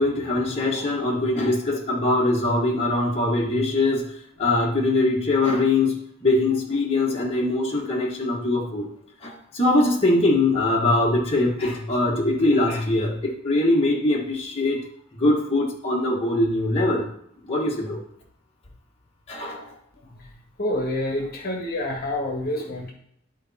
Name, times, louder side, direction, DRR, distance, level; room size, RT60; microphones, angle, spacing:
voice 1, 0.0-4.0 4.4-8.9 9.2-14.8 15.1-17.1 17.4-18.0 19.3-19.7, left 2 dB, 30° left, -3 dB, 1.5 m, -22 dB
voice 2, 20.0-22.9, left 1 dB, 50° left, 0 dB, 1.5 m, -28 dB
11.0 x 4.1 x 4.3 m, 0.69 s
head